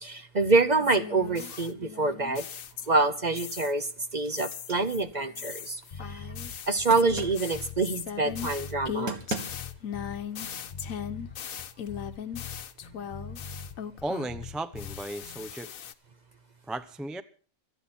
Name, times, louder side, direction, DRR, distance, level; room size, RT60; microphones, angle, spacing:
voice 1, 0.0-2.5 2.9-3.9 4.1-6.2 6.7-9.2, right 3 dB, 35° right, 0.8 m, -26 dB
sound 1, 0.8-3.1 3.4-3.9 4.4-14.5 14.8-15.9, left 8 dB, 70° left, 1.3 m, -39 dB
sound 2, 2.6-3.3 3.6-5.9 6.9-7.5 8.7-8.8 9.1-9.9, right 2 dB, 70° right, 2.1 m, -39 dB
sound 3, 5.9-15.5, left 6 dB, 35° left, 1.5 m, -43 dB
voice 2, 14.0-15.7 16.7-17.2, right 1 dB, ahead, 0.4 m, -35 dB
25.5 x 9.2 x 4.3 m
omnidirectional pair, 1.6 m